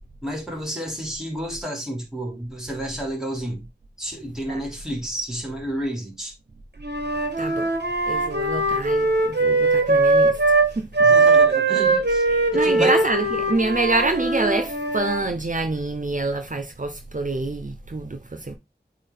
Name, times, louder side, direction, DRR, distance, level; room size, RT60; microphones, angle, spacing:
voice 1, 0.2-3.7 4.0-6.3 11.0-12.2 12.6-13.0, right 1 dB, 5° right, 2.9 m, -31 dB
Wind instrument woodwind instrument, 6.8-10.7 10.9-15.3, right 3 dB, 70° right, 2.0 m, -20 dB
voice 2, 7.4-7.7 8.1-10.4 10.7-10.9 12.5-18.5, right 2 dB, 50° right, 0.8 m, -26 dB
8.3 x 3.8 x 3.6 m
wide cardioid pair, 40°, 18 cm